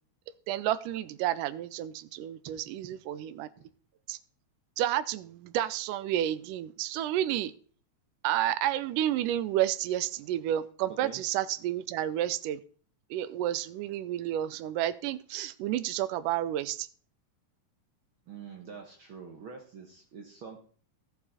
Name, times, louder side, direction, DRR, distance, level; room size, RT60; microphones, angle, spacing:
voice 1, 0.5-3.5 4.1-4.2 4.8-7.5 8.2-12.6 13.1-16.9, right 12 dB, 80° right, 15 dB, 2.1 m, -30 dB
voice 2, 10.9-11.2 18.3-20.6, right 6 dB, 60° right, 3 dB, 1.3 m, -45 dB
13.5 x 6.9 x 4.2 m, 0.43 s
omnidirectional pair, 3.8 m